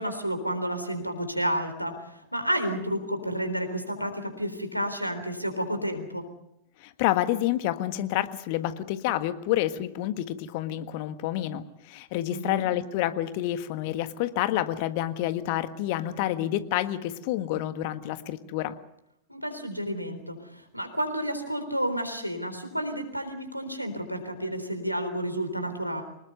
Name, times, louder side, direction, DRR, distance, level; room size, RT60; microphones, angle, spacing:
voice 1, 0.0-6.2 12.3-12.6 19.3-26.0, equal, 90° right, 7 dB, 3.8 m, -31 dB
voice 2, 6.8-18.8, left 13 dB, 50° left, 11 dB, 1.6 m, -28 dB
25.0 x 20.0 x 6.9 m, 0.81 s
figure-of-eight pair, 90°, 0 cm